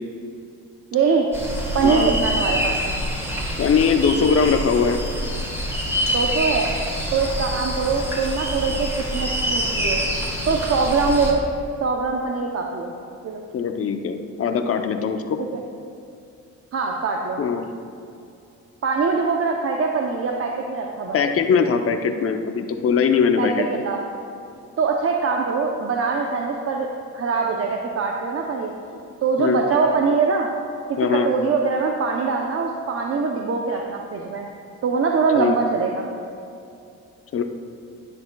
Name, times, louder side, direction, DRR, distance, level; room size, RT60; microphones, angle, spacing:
voice 1, 0.9-1.3 1.7-2.7 6.1-6.7 7.1-10.0 10.5-11.4 11.8-12.9 13.2-13.4 16.7-17.4 18.8-21.2 23.4-24.0 24.8-30.5 30.9-34.5 34.8-36.1, right 4 dB, 50° right, 1 dB, 0.8 m, -23 dB
sound 1, 1.3-11.3, equal, 10° right, 2.3 m, -26 dB
voice 2, 1.8-2.2 3.6-5.0 13.5-15.4 17.4-17.6 21.1-23.7 29.4-29.6 31.0-31.3 35.4-35.6 37.3-37.4, left 6 dB, 50° left, 6 dB, 0.7 m, -21 dB
12.0 x 9.6 x 2.3 m, 2.6 s
cardioid pair, 90°, 30 cm